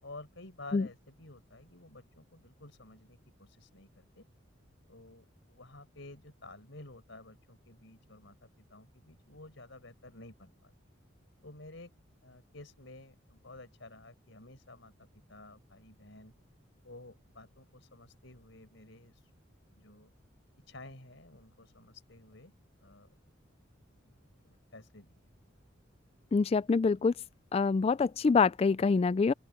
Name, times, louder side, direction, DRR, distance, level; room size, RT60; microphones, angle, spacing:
voice 1, 0.0-4.2 4.9-10.7 11.4-11.9 12.2-16.3 16.8-19.3 19.7-20.1 20.7-22.5 22.8-23.1 24.0-24.1 24.4-25.2, left 2 dB, 65° left, 5.5 m, -52 dB
voice 2, 26.3-27.1 27.5-29.3, left 4 dB, 30° left, 0.3 m, -25 dB
open air
head